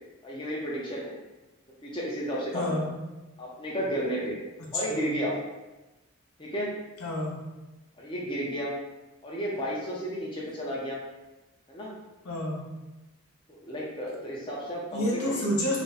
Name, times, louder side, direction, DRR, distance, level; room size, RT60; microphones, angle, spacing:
voice 1, 0.2-1.1 1.8-2.7 3.4-4.4 4.7-5.3 6.4-6.7 8.0-8.7 9.2-11.0 11.7-11.9 13.5-15.4, equal, 20° left, -5 dB, 0.5 m, -32 dB
voice 2, 2.5-2.9 4.7-5.1 7.0-7.4 12.2-12.7 14.9-15.8, left 1 dB, 85° left, -4 dB, 0.8 m, -29 dB
2.6 x 2.1 x 3.9 m, 1.1 s
head